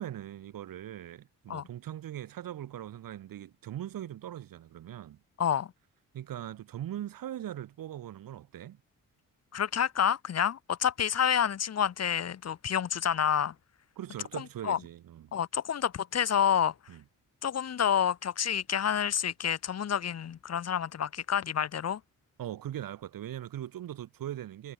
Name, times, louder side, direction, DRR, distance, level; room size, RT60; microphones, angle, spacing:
voice 1, 0.0-5.2 6.1-8.8 14.0-15.3 16.9-17.0 22.4-24.7, right 11 dB, 85° right, 2.7 m, -40 dB
voice 2, 5.4-5.7 9.5-13.5 14.3-14.8 15.3-16.7 17.4-22.0, left 8 dB, 50° left, 1.5 m, -28 dB
wide cardioid pair, 140°, 33 cm